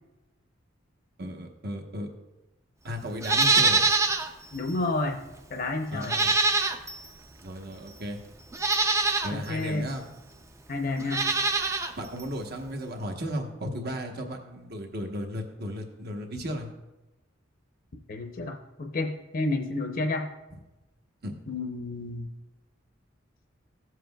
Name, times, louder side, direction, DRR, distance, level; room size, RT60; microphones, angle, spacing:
voice 1, 1.2-2.1 2.8-3.9 5.9-6.3 7.4-8.2 9.2-10.0 12.0-16.7 21.2-21.4, equal, 55° right, 3 dB, 1.1 m, -35 dB
Livestock farm animals working animals, 3.2-4.3 4.7-4.8 6.0-7.1 7.9-8.0 8.5-9.3 11.0-11.9 12.2-12.3, right 3 dB, 15° right, 0.5 m, -24 dB
voice 2, 4.5-5.2 5.5-6.2 9.3-9.9 10.7-11.3 18.1-20.3 21.5-22.3, left 2 dB, 50° left, 4 dB, 0.7 m, -30 dB
15.5 x 7.6 x 2.3 m, 1.0 s
head